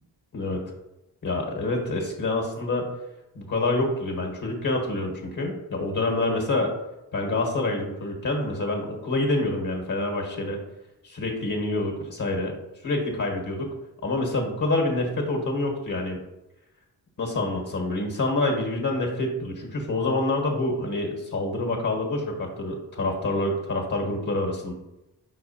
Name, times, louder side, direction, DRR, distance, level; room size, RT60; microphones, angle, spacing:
voice 1, 0.3-0.6 1.2-2.9 3.3-6.7 7.1-10.6 11.0-12.5 12.8-13.7 14.0-16.2 17.2-24.7, left 2 dB, 45° left, 1 dB, 1.3 m, -27 dB
4.8 x 4.0 x 2.7 m, 0.95 s
supercardioid pair, 45°, 42 cm